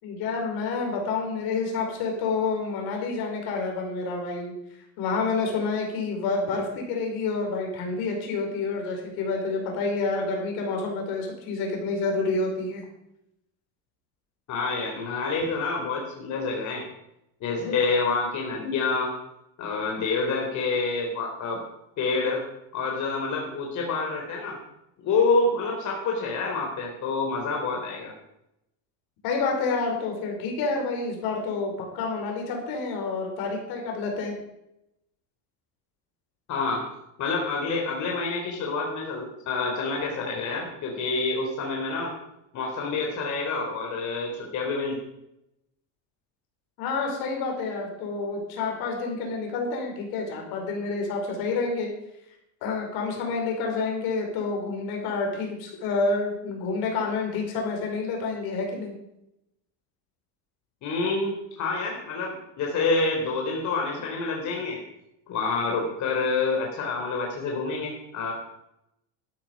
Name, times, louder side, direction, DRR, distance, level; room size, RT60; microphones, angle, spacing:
voice 1, 0.0-4.5 5.0-12.8 29.2-34.3 46.8-51.9 52.6-58.9, left 4 dB, 70° left, 1 dB, 4.9 m, -28 dB
voice 2, 14.5-16.8 17.4-19.1 19.6-21.6 22.0-22.4 22.7-24.6 25.0-28.1 36.5-36.8 37.2-42.1 42.5-45.0 60.8-64.8 65.3-68.3, left 3 dB, 50° left, 0 dB, 3.6 m, -27 dB
13.0 x 12.5 x 5.2 m, 0.84 s
cardioid pair, 130°, 38 cm